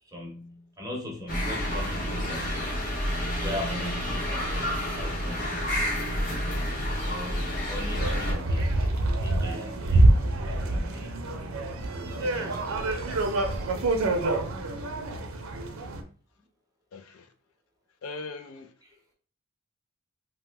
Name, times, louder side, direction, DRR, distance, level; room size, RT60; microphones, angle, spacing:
voice 1, 0.0-2.7 3.4-5.9 7.0-11.1 11.7-13.2 18.8-19.0, left 1 dB, 15° right, 0.7 m, -40 dB
sound 1, 1.3-8.3, equal, 40° left, 0.8 m, -29 dB
sound 2, 8.0-16.0, right 2 dB, 80° right, 0.5 m, -26 dB
voice 2, 16.9-17.3 18.0-18.7, left 3 dB, 85° left, 0.4 m, -40 dB
2.9 x 2.0 x 3.2 m
head